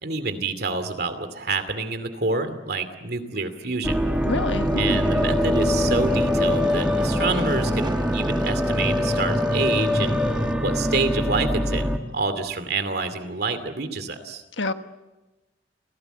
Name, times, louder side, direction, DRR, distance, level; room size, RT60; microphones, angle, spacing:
voice 1, 0.0-4.0 4.8-10.2 10.6-14.4, right 3 dB, 60° right, 9 dB, 2.5 m, -27 dB
sound 1, 3.8-12.0, left 1 dB, 5° right, 1.7 m, -23 dB
voice 2, 4.2-5.0 14.6-14.7, left 2 dB, 85° left, 8 dB, 1.4 m, -27 dB
sound 2, 4.3-10.5, right 1 dB, 25° right, 0.8 m, -32 dB
29.0 x 17.5 x 8.1 m, 1.1 s
head